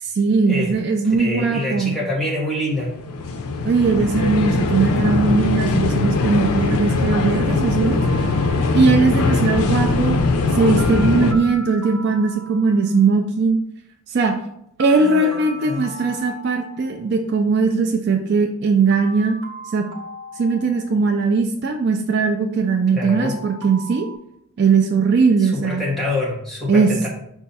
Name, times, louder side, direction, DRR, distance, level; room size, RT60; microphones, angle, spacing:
voice 1, 0.0-2.0 3.6-8.0 8.7-10.2 10.5-13.6 14.1-14.3 14.8-19.4 19.7-19.8 20.4-24.1 24.6-25.8 26.7-26.9, right 4 dB, 50° right, 4 dB, 0.3 m, -19 dB
voice 2, 1.0-2.9 14.9-15.8 22.9-23.3 25.4-27.1, left 2 dB, ahead, -5 dB, 1.1 m, -26 dB
sound 1, 2.7-11.3, left 3 dB, 85° left, 0.5 m, -20 dB
sound 2, 8.0-9.1 10.8-13.1 14.8-17.1 18.9-21.2 23.1-24.2, right 1 dB, 65° right, 0.8 m, -38 dB
5.4 x 2.4 x 4.0 m, 0.74 s
head